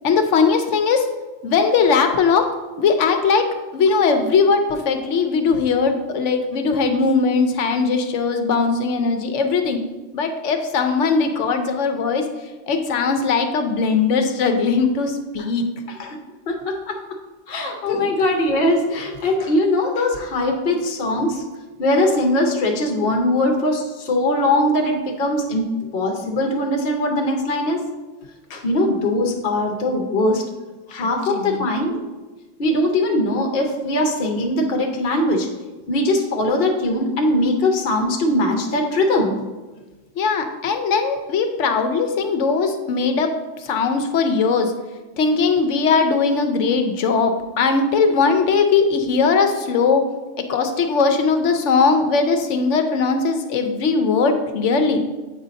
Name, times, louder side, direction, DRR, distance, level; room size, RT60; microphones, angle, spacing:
voice 1, 0.0-1.1 1.4-2.5 2.8-3.5 3.7-9.8 10.1-12.3 12.7-15.6 17.9-18.1 30.9-31.7 40.2-43.3 43.6-44.7 45.2-50.0 50.4-55.0, left 5 dB, 80° left, 6 dB, 1.0 m, -19 dB
voice 2, 16.5-17.0 17.5-21.4 21.8-27.9 28.5-30.4 30.9-32.0 32.6-35.5 35.9-39.4, left 1 dB, 55° left, 2 dB, 1.0 m, -21 dB
8.1 x 2.7 x 5.1 m, 1.2 s
omnidirectional pair, 1.2 m